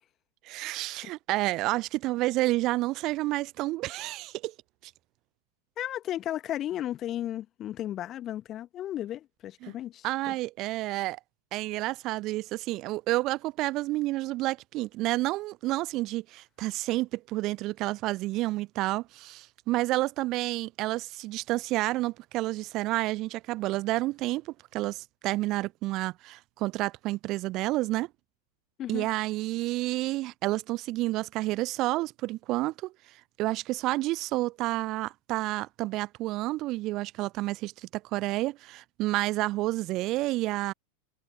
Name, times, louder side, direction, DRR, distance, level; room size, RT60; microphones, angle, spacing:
voice 1, 0.4-4.5 9.6-9.7 10.0-11.2 11.5-28.1 28.9-32.9 33.4-40.7, right 18 dB, 40° right, 0.5 m, -30 dB
voice 2, 5.8-10.3 28.8-29.1, left 12 dB, 30° left, 1.4 m, -34 dB
figure-of-eight pair, 90°, 0 cm